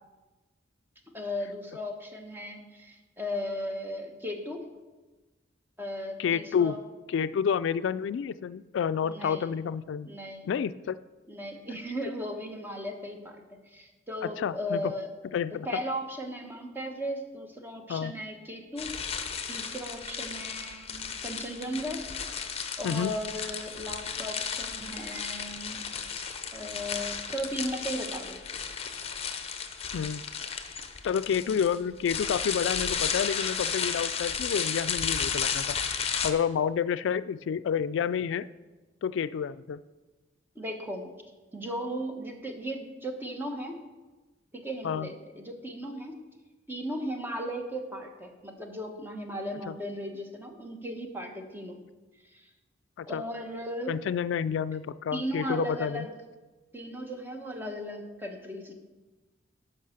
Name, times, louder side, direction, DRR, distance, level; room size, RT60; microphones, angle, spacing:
voice 1, 1.1-4.6 5.8-6.8 9.0-9.5 10.0-10.5 11.3-13.4 13.7-15.1 15.6-18.9 19.5-22.0 22.8-25.9 26.2-26.3 26.5-28.4 40.5-41.1 41.5-43.8 44.5-46.2 46.7-51.8 52.3-52.4 53.1-54.0 55.1-56.1 56.7-58.7, equal, 10° right, 3 dB, 1.1 m, -36 dB
voice 2, 6.2-6.7 7.1-10.1 10.5-11.0 14.2-14.9 15.3-15.7 17.9-18.1 22.8-23.1 29.9-30.2 31.0-35.8 36.2-38.5 39.0-39.8 44.8-45.1 49.7-49.8 53.0-53.2 53.9-56.1, left 7 dB, 85° left, 15 dB, 0.3 m, -29 dB
sound 1, 18.8-36.3, left 6 dB, 35° left, 0.7 m, -34 dB
11.0 x 5.5 x 6.4 m, 1.2 s
head